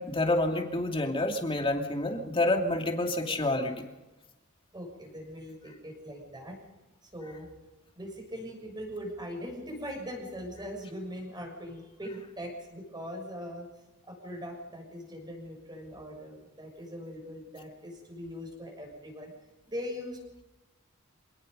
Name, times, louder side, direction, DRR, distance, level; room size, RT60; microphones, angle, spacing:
voice 1, 0.0-3.7, left 2 dB, 25° left, 2 dB, 2.7 m, -28 dB
voice 2, 4.7-6.6 7.0-7.5 7.9-13.7 14.0-19.3 19.7-20.4, equal, 20° right, 3 dB, 6.6 m, -41 dB
26.0 x 18.5 x 5.4 m, 1.1 s
head